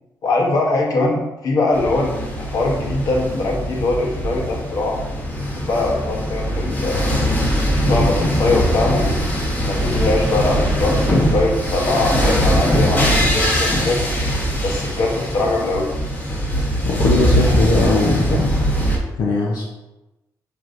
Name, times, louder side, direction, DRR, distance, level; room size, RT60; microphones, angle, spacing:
voice 1, 0.2-5.0 5.6-7.1 7.7-9.2 9.6-14.0 14.6-15.9, left 2 dB, 55° left, -1 dB, 1.0 m, -22 dB
sound 1, 1.7-19.0, equal, 25° left, 1.0 m, -21 dB
voice 2, 16.8-18.5 19.2-19.6, left 3 dB, 75° left, -3 dB, 0.7 m, -19 dB
6.6 x 2.9 x 2.6 m, 1.0 s
cardioid pair, 145°, 7 cm